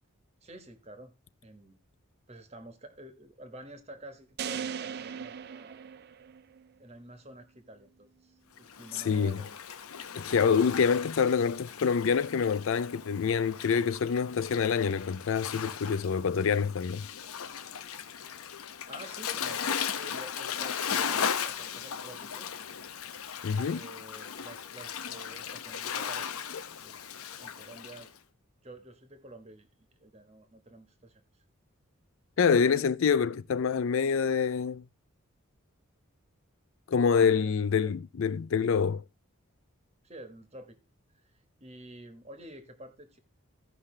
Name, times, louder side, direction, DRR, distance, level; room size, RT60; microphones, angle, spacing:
voice 1, 0.4-1.1 1.4-1.8 2.3-5.9 6.8-9.7 18.9-22.5 23.6-26.4 26.8-27.0 27.4-28.1 28.6-31.4 37.4-38.0 40.0-40.8 41.2-43.2, right 1 dB, 30° right, 1.4 m, -49 dB
sound 1, 4.4-6.7, right 7 dB, 45° right, 0.4 m, -38 dB
Waves surf, 8.6-28.1, left 7 dB, 80° left, 0.8 m, -37 dB
voice 2, 8.9-9.4 10.2-17.0 23.4-23.8 32.4-34.8 36.9-39.0, left 6 dB, 65° left, 0.4 m, -26 dB
15.0 x 5.7 x 3.2 m
head